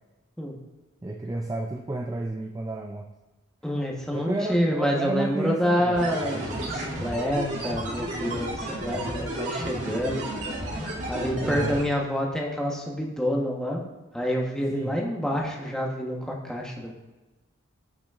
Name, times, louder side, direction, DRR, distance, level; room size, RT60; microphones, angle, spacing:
voice 1, 1.0-3.1 3.7-3.9 4.1-6.0 11.4-11.8 14.7-15.0, right 2 dB, 15° right, 2 dB, 0.3 m, -31 dB
voice 2, 3.6-10.2 11.1-13.8 14.1-16.9, equal, 5° left, -2 dB, 1.0 m, -27 dB
sound 1, 5.9-11.8, right 1 dB, 60° right, 2.5 m, -32 dB
14.5 x 5.9 x 2.4 m, 1.1 s
head